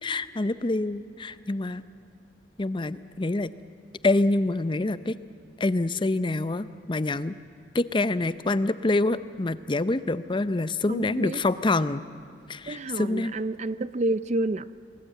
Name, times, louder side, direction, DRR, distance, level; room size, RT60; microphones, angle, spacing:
voice 1, 0.0-1.8 2.6-3.5 4.0-5.2 5.6-7.3 7.7-12.0 12.5-13.3, left 2 dB, 30° left, 14 dB, 0.6 m, -26 dB
voice 2, 10.9-11.4 12.7-14.7, right 2 dB, 40° right, 16 dB, 0.5 m, -29 dB
27.5 x 20.0 x 8.2 m, 2.5 s
head